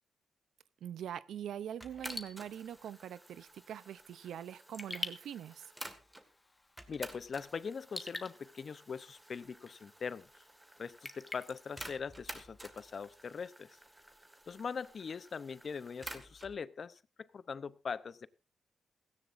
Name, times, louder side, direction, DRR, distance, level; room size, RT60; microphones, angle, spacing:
voice 1, 0.8-5.6, right 10 dB, 90° right, 0.6 m, -43 dB
sound 1, 1.8-6.3 6.8-16.6, right 1 dB, 10° right, 1.9 m, -52 dB
Raindrop / Drip, 1.9-12.7, left 2 dB, 15° left, 1.5 m, -49 dB
voice 2, 6.9-10.4 10.8-13.8 14.5-18.3, left 5 dB, 50° left, 0.6 m, -42 dB
17.0 x 16.5 x 2.6 m
cardioid pair, 105°, 0 cm